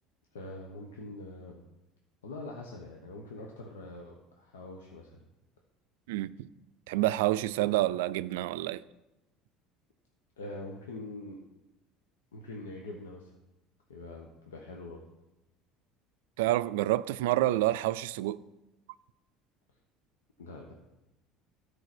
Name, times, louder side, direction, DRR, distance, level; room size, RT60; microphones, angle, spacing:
voice 1, 0.3-1.6 2.2-5.2 10.4-11.4 12.3-13.3 13.9-15.0 20.4-20.7, left 2 dB, 90° left, 1.0 m, -44 dB
voice 2, 6.1-6.5 6.9-8.8 16.4-18.4, right 15 dB, 80° right, 0.3 m, -28 dB
12.5 x 4.8 x 6.0 m
hypercardioid pair, 75°, 0 cm